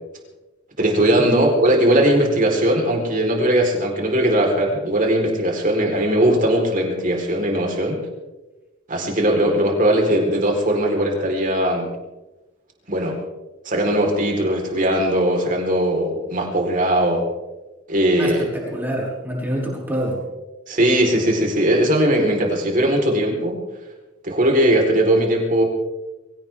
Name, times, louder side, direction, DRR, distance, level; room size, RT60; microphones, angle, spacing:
voice 1, 0.8-8.1 8.9-11.9 12.9-13.2 13.6-17.3 17.9-18.4 20.7-23.6 24.2-25.6, right 1 dB, 45° right, 1 dB, 4.3 m, -19 dB
voice 2, 18.2-20.2, equal, 10° right, -5 dB, 6.4 m, -26 dB
23.0 x 17.0 x 3.7 m, 1.1 s
head